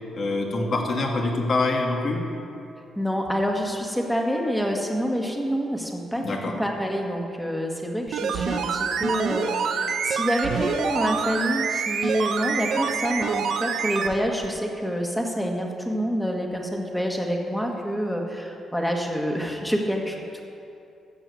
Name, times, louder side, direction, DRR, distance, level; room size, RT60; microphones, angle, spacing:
voice 1, 0.1-2.2 6.2-6.5, left 2 dB, 45° left, 1 dB, 2.0 m, -25 dB
voice 2, 2.9-20.4, equal, 5° left, 1 dB, 1.7 m, -27 dB
sound 1, 8.1-14.2 14.4-14.5, right 6 dB, 70° right, 0.7 m, -26 dB
14.0 x 6.9 x 8.4 m, 2.7 s
cardioid pair, 115°, 0 cm